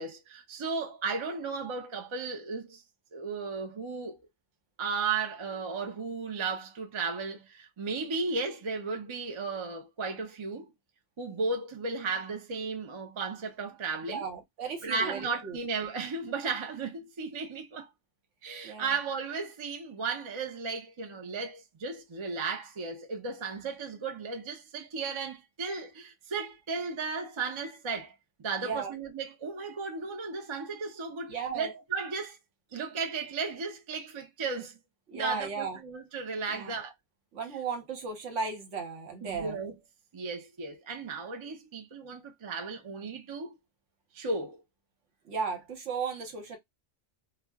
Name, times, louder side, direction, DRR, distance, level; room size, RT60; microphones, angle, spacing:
voice 1, 0.0-2.8 3.1-4.2 4.8-10.7 11.2-14.3 14.8-17.9 18.4-32.4 32.7-34.8 35.1-36.9 39.2-39.8 40.1-43.6 44.1-44.6, right 4 dB, 45° right, 0.4 m, -35 dB
voice 2, 14.0-15.6 18.6-18.9 28.6-28.9 31.3-31.7 35.1-35.8 36.5-36.8 37.3-39.6 45.2-46.6, right 5 dB, 70° right, 1.2 m, -35 dB
2.4 x 2.1 x 3.4 m
omnidirectional pair, 1.3 m